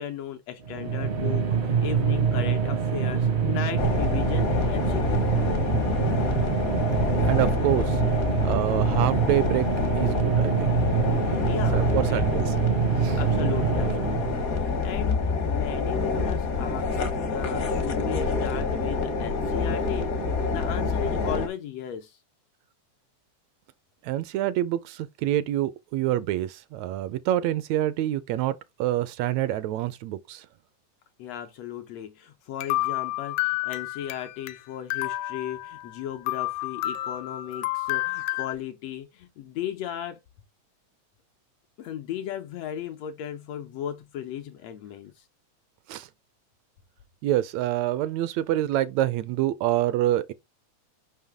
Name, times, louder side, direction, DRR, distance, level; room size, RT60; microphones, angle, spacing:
voice 1, 0.0-5.3 11.2-12.2 13.2-20.1 20.5-22.2 31.2-40.2 41.8-45.3, left 10 dB, 75° left, 1.6 m, -36 dB
sound 1, 0.6-14.5, right 6 dB, 55° right, 0.7 m, -25 dB
sound 2, 3.8-21.5, left 4 dB, 55° left, 1.0 m, -27 dB
voice 2, 7.2-8.0 8.4-9.7 9.9-10.7 11.7-12.5 13.0-13.2 24.0-30.5 45.9-46.1 47.2-50.3, right 13 dB, 80° right, 1.7 m, -26 dB
sound 3, 32.6-34.6 34.9-36.0 36.3-38.5, left 17 dB, 90° left, 2.0 m, -30 dB
5.7 x 5.6 x 3.5 m
omnidirectional pair, 3.4 m